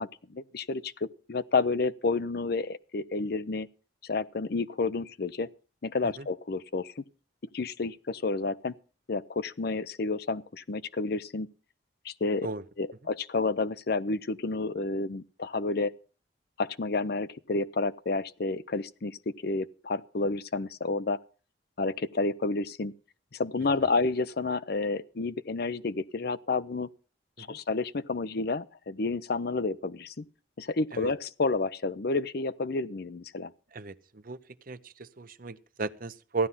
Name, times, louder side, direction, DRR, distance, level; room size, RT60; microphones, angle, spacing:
voice 1, 0.0-3.7 4.0-5.5 5.8-7.0 7.5-8.8 9.1-11.5 12.0-12.5 12.8-15.9 16.6-21.2 21.8-22.9 23.3-26.9 27.4-30.2 30.6-33.5, left 3 dB, 60° left, 0.6 m, -30 dB
voice 2, 33.7-34.4 34.7-36.5, right 3 dB, 50° right, 0.8 m, -35 dB
15.5 x 11.0 x 5.6 m
head